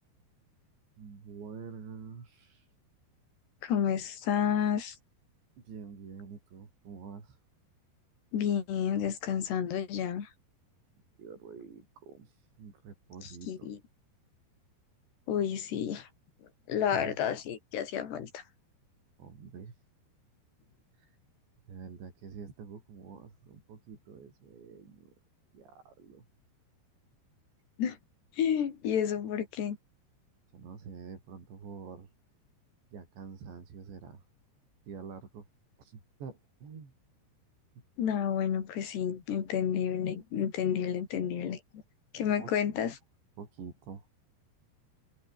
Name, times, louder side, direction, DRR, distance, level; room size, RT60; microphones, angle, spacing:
voice 1, 1.0-2.7 5.6-7.4 11.2-13.7 16.8-17.2 19.2-19.8 20.9-21.2 21.7-25.1 25.5-26.3 30.5-32.1 32.9-34.2 34.9-35.5 35.8-36.9 42.4-42.5 43.4-44.1, right 6 dB, 75° right, 7.9 m, -47 dB
voice 2, 3.6-5.0 8.3-10.3 13.2-13.8 15.3-16.1 16.7-18.4 27.8-28.0 28.4-29.8 38.0-41.6 42.1-43.0, left 8 dB, 70° left, 5.3 m, -30 dB
omnidirectional pair, 5.1 m